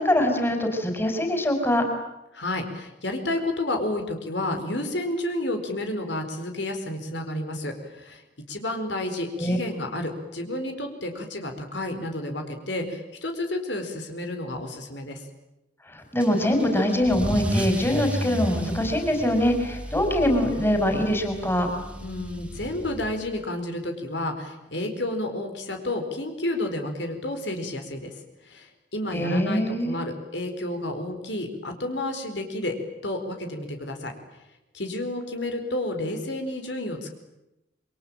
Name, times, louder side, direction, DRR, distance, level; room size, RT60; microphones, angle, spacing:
voice 1, 0.0-1.9 9.4-9.6 15.9-21.7 29.1-30.0, left 1 dB, 10° left, 4 dB, 5.0 m, -23 dB
voice 2, 2.3-8.2 8.5-15.2 22.0-28.1 28.4-32.8 33.0-34.1 34.7-37.1, left 1 dB, 70° left, 5 dB, 4.6 m, -31 dB
Car / Engine starting / Accelerating revving vroom, 16.2-23.4, equal, 5° right, 2.5 m, -33 dB
28.0 x 24.0 x 9.0 m, 0.92 s
head